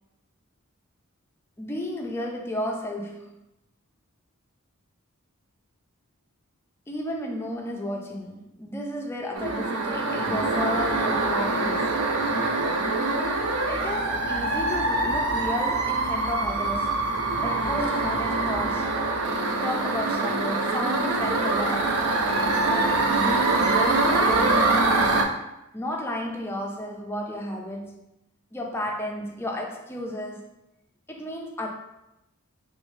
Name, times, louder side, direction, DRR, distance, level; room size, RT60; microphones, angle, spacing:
voice 1, 1.6-3.4 6.9-12.0 13.7-17.1 17.4-19.0 19.6-22.1 22.6-25.1 25.7-28.0 28.5-30.5 31.1-31.7, left 1 dB, 10° left, 0.4 m, -33 dB
sound 1, 9.4-25.3, right 3 dB, 90° right, 0.4 m, -24 dB
3.2 x 2.7 x 3.1 m
head